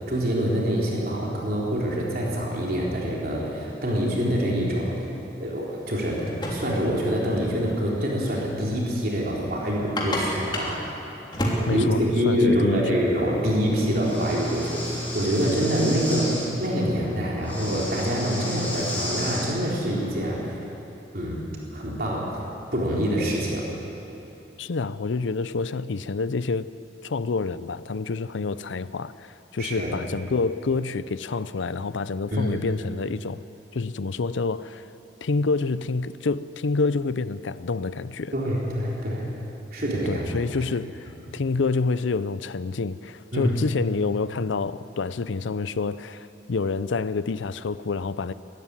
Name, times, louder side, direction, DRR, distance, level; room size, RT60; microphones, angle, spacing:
voice 1, 0.1-5.1 5.4-10.8 11.7-20.5 21.1-21.4 21.7-22.4 22.7-23.7 29.6-29.9 32.3-32.6 38.3-39.3 39.7-40.3 41.3-41.4 43.3-43.5, equal, 50° right, 3.8 m, -25 dB
sound 1, 6.2-20.4, equal, 25° left, 3.2 m, -34 dB
voice 2, 11.7-13.0 24.6-26.7 27.0-33.4 33.7-34.9 35.2-38.3 40.1-48.3, left 4 dB, 85° left, 0.6 m, -28 dB
Breathing, 14.0-16.5 17.4-19.5, left 1 dB, 10° left, 6.5 m, -34 dB
23.0 x 13.0 x 9.8 m
head